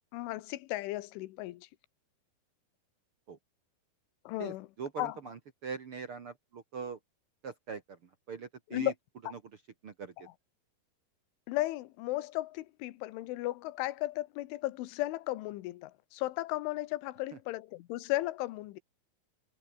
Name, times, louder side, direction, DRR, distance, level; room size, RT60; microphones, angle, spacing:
voice 1, 0.1-1.7 4.3-4.7 5.0-5.2 8.7-8.9 9.2-9.3 10.2-10.3 11.5-18.8, left 17 dB, 80° left, 3.5 m, -35 dB
voice 2, 4.8-7.0 7.4-7.8 8.3-8.9 9.8-10.1, right 6 dB, 80° right, 1.2 m, -41 dB
omnidirectional pair, 5.7 m